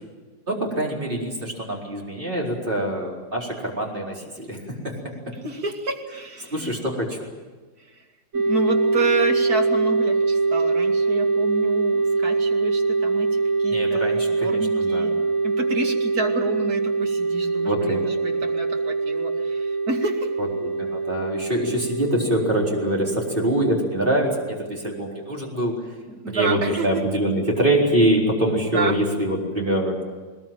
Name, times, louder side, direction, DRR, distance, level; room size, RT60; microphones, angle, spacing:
voice 1, 0.5-4.9 6.5-7.2 13.7-15.1 17.6-18.0 20.6-25.7 26.3-29.9, right 1 dB, 30° right, -2 dB, 4.7 m, -24 dB
voice 2, 5.3-6.8 7.8-8.0 8.3-15.2 15.4-20.3 25.1-25.2 26.1-26.9 28.7-29.0, right 3 dB, 70° right, 2 dB, 2.9 m, -30 dB
sound 1, 8.3-25.7, right 3 dB, 50° right, 1.8 m, -24 dB
21.0 x 20.5 x 9.1 m, 1.4 s
omnidirectional pair, 1.7 m